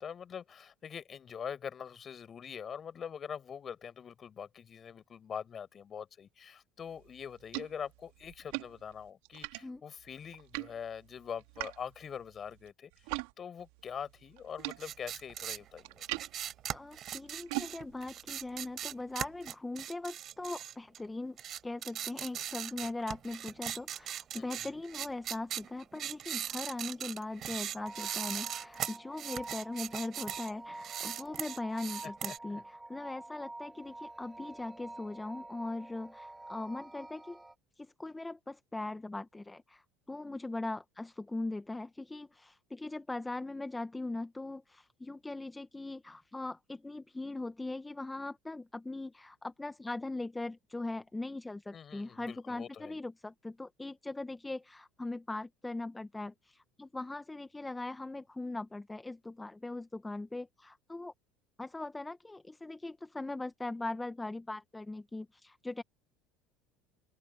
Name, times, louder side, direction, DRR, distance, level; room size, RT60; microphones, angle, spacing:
voice 1, 0.0-13.1 13.4-16.0 22.3-22.4 22.8-22.9 24.3-24.7 32.0-32.6 51.7-53.0, left 7 dB, 35° left, 5.4 m, -44 dB
sound 1, 6.9-13.3 13.6-19.5, right 25 dB, 80° right, 1.9 m, -44 dB
sound 2, 14.7-21.1 21.4-30.5 30.8-32.4, right 10 dB, 45° right, 5.9 m, -39 dB
voice 2, 16.7-21.4 21.6-37.4 37.8-61.1 61.6-65.8, left 2 dB, 10° left, 1.0 m, -40 dB
sound 3, 27.8-37.6, right 2 dB, 10° right, 5.4 m, -48 dB
open air
supercardioid pair, 90°, 0 cm